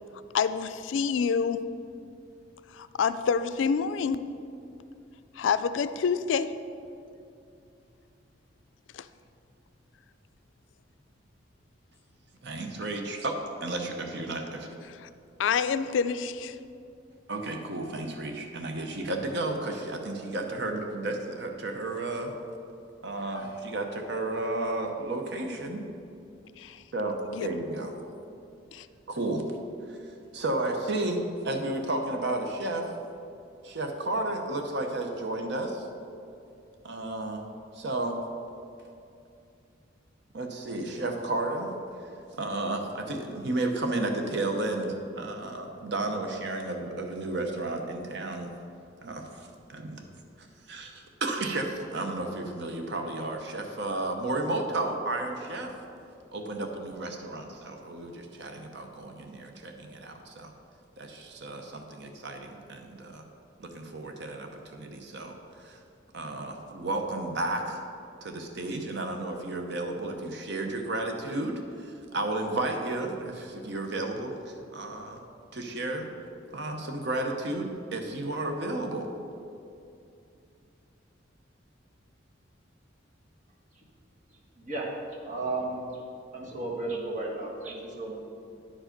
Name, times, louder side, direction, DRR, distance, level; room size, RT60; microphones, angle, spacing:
voice 1, 0.3-1.6 2.7-4.2 5.4-6.5 8.9-9.1 15.0-15.1 15.4-16.6 26.6-26.8 27.3-27.5 28.7-28.9, left 6 dB, 80° left, 12 dB, 0.3 m, -27 dB
voice 2, 12.4-14.7 17.3-22.3 23.0-25.8 26.9-27.9 29.1-29.4 29.9-30.0 30.3-32.9 33.6-35.9 36.8-37.4 37.7-38.2 40.3-41.7 42.4-48.5 49.0-50.1 50.4-55.7 56.3-60.5 61.0-63.2 63.6-65.8 66.1-67.8 68.2-75.2 75.5-76.1 76.5-79.1, right 2 dB, 65° right, 4 dB, 0.8 m, -32 dB
voice 3, 84.6-84.9 85.2-85.8 86.3-88.1, right 2 dB, 40° right, -3 dB, 1.6 m, -33 dB
10.0 x 5.0 x 5.1 m, 2.6 s
head